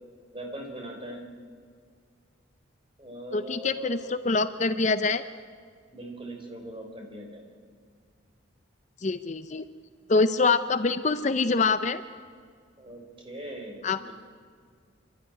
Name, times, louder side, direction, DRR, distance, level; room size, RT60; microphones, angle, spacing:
voice 1, 0.3-1.2 3.0-4.1 5.9-7.4 12.8-14.1, right 1 dB, 25° right, 1 dB, 3.8 m, -40 dB
voice 2, 3.3-5.2 9.0-9.7 10.1-12.0 13.8-14.1, left 4 dB, 35° left, 11 dB, 0.5 m, -25 dB
27.5 x 12.5 x 9.8 m, 2.1 s
head